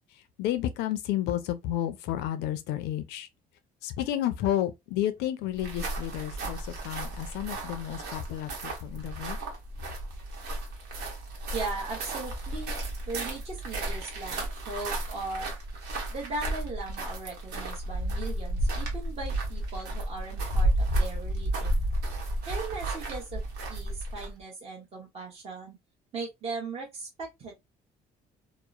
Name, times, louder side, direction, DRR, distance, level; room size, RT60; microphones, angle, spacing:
voice 1, 0.4-3.3 3.8-9.4, left 12 dB, 90° left, 0.5 m, -31 dB
sound 1, 5.5-24.4, right 1 dB, 80° right, 1.0 m, -32 dB
voice 2, 11.5-12.8 13.1-15.5 16.1-21.7 22.5-23.4 23.7-25.8 26.1-27.6, right 3 dB, 35° right, 1.0 m, -38 dB
2.9 x 2.0 x 2.3 m
cardioid pair, 110°, 17 cm